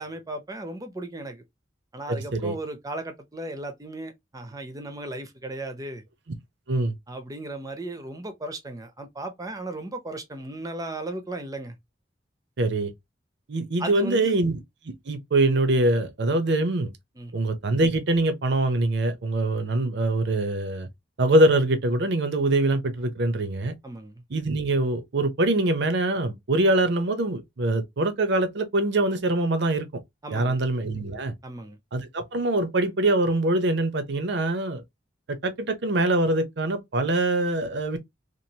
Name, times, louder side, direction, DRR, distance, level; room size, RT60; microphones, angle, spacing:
voice 1, 0.0-1.4 1.9-6.0 7.1-11.8 13.8-14.4 17.2-17.3 23.8-24.1 30.2-30.6 31.4-31.8, right 1 dB, 20° right, 0.6 m, -36 dB
voice 2, 2.1-2.6 6.7-6.9 12.6-12.9 13.5-14.6 14.8-16.9 17.3-20.9 21.2-23.8 24.3-29.9 30.3-31.3 31.9-34.8 35.4-38.0, right 2 dB, 65° right, 0.6 m, -24 dB
3.0 x 2.5 x 2.7 m
head